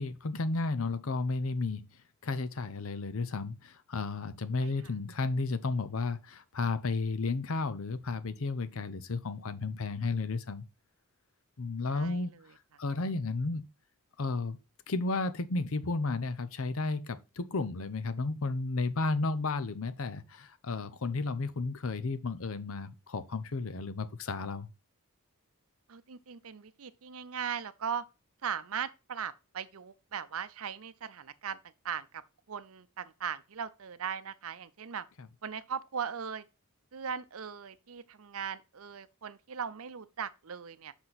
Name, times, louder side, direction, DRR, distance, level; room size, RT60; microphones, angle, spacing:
voice 1, 0.0-1.8 2.2-10.6 11.6-13.6 14.2-14.6 14.9-24.7 35.2-35.3, left 3 dB, 65° left, 0.7 m, -33 dB
voice 2, 25.9-28.0 28.4-31.6 31.8-32.2 32.5-35.0 35.4-36.4 36.9-40.9, right 7 dB, 70° right, 0.6 m, -38 dB
7.7 x 6.1 x 4.1 m
head